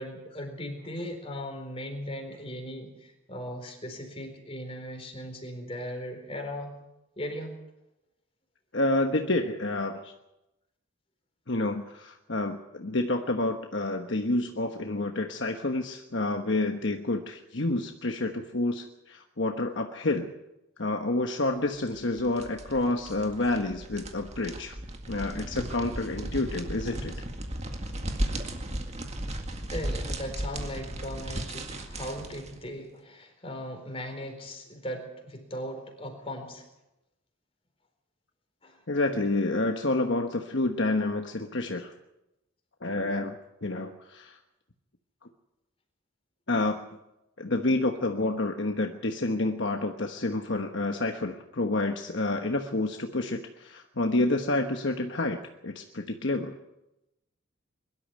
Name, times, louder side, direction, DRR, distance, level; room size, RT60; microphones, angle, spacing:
voice 1, 0.0-6.8 7.2-7.6 29.7-36.6 38.6-38.8, equal, 25° left, 4 dB, 4.2 m, -38 dB
voice 2, 8.7-10.1 11.5-20.3 20.8-24.8 25.1-27.1 38.9-41.9 42.8-44.4 46.5-46.8 47.4-55.4 55.6-56.6, left 2 dB, 60° left, 4 dB, 1.2 m, -29 dB
sound 1, 21.9-32.6, right 1 dB, 30° right, 2.0 m, -36 dB
22.0 x 12.5 x 9.6 m, 0.93 s
head